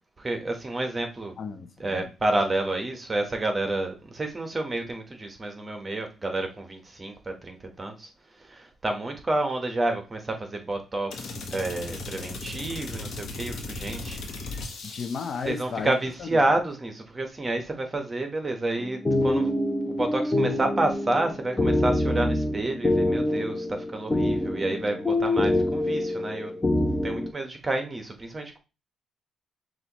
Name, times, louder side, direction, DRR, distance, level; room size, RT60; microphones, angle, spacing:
voice 1, 0.2-1.3 1.8-8.1 8.4-14.2 14.6-14.8 15.4-19.5 19.8-26.6 27.0-28.6, right 2 dB, 25° right, 1.1 m, -29 dB
voice 2, 1.4-2.1 14.8-16.4, left 5 dB, 50° left, 0.6 m, -34 dB
sound 1, 11.1-15.6, left 2 dB, 70° left, 1.1 m, -37 dB
sound 2, 18.8-27.3, left 1 dB, 20° left, 0.9 m, -25 dB
6.1 x 2.6 x 3.0 m
cardioid pair, 90°, 0 cm